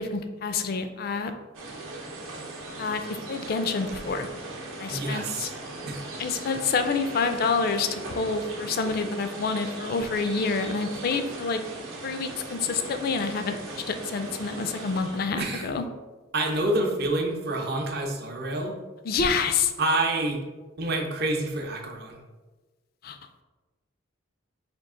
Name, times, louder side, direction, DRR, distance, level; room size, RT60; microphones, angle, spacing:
voice 1, 0.0-1.3 2.8-3.0 3.3-4.3 4.8-5.5 6.2-11.6 12.0-13.6 13.9-15.8 19.0-19.7 23.0-23.2, left 4 dB, 45° left, 8 dB, 0.3 m, -27 dB
sound 1, 1.5-15.3, right 2 dB, 85° right, 0.8 m, -39 dB
voice 2, 4.9-5.5 5.9-6.0 15.4-15.7 16.3-18.7 19.8-20.4 20.8-22.2, right 2 dB, 50° right, 2 dB, 0.6 m, -27 dB
5.2 x 2.4 x 3.6 m, 1.2 s
head